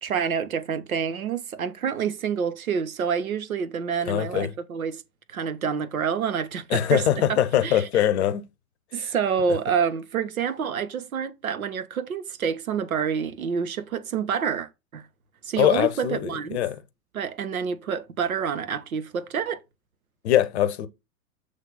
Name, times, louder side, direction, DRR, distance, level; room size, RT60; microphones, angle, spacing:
voice 1, 0.0-5.0 5.3-7.0 7.3-7.4 7.6-7.9 8.9-15.0 15.4-16.6 17.1-19.6, right 7 dB, 70° right, 0.9 m, -28 dB
voice 2, 4.1-4.5 6.7-8.4 8.9-9.1 15.6-16.8 20.2-20.9, left 11 dB, 45° left, 0.8 m, -22 dB
7.4 x 3.3 x 5.4 m
figure-of-eight pair, 100°, 44 cm